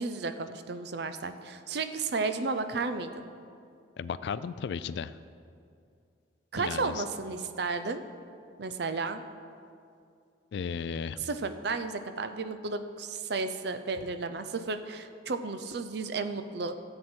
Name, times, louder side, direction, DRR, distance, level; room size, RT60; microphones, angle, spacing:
voice 1, 0.0-3.2 6.5-8.0 8.6-9.2 11.2-16.7, right 4 dB, 55° right, 10 dB, 0.6 m, -33 dB
voice 2, 4.0-5.2 6.6-7.0 10.5-11.3, left 6 dB, 60° left, 15 dB, 0.3 m, -35 dB
13.5 x 7.8 x 4.4 m, 2.4 s
head